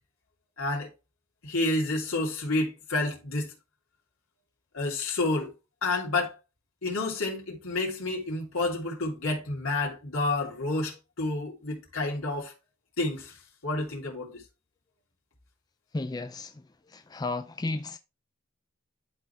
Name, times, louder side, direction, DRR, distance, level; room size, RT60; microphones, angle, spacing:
voice 1, 0.6-0.9 1.4-3.5 4.7-5.5 5.8-6.3 6.8-12.5 13.0-13.3 13.6-14.4, left 2 dB, 85° left, 2.8 m, -29 dB
voice 2, 15.9-16.6 16.9-18.0, left 2 dB, 20° left, 0.3 m, -33 dB
11.5 x 3.9 x 3.3 m
head